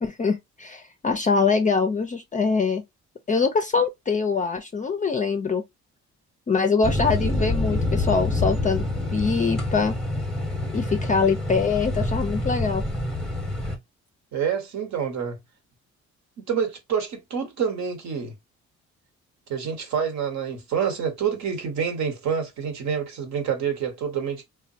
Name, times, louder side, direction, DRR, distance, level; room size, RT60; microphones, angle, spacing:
voice 1, 0.0-2.8 3.3-5.6 6.5-8.8 9.1-9.9 10.7-12.8, left 5 dB, 25° left, 0.4 m, -23 dB
sound 1, 6.8-13.8, left 2 dB, ahead, 0.8 m, -27 dB
voice 2, 14.3-15.4 16.4-18.3 19.5-24.4, right 7 dB, 65° right, 1.0 m, -27 dB
3.2 x 2.2 x 2.6 m
cardioid pair, 90°, 30 cm